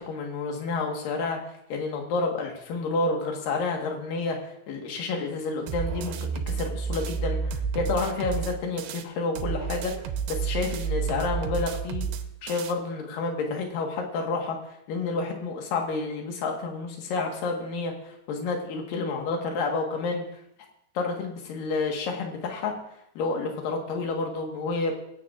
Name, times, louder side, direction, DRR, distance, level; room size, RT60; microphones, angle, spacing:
voice 1, 0.0-9.9 10.3-12.1 12.4-14.6 14.9-20.4 20.9-22.7 23.2-25.0, left 3 dB, 60° left, 2 dB, 2.7 m, -30 dB
sound 1, 5.7-9.0 9.4-12.7, right 6 dB, 80° right, 2.7 m, -31 dB
20.5 x 9.4 x 2.5 m, 0.76 s
omnidirectional pair, 5.3 m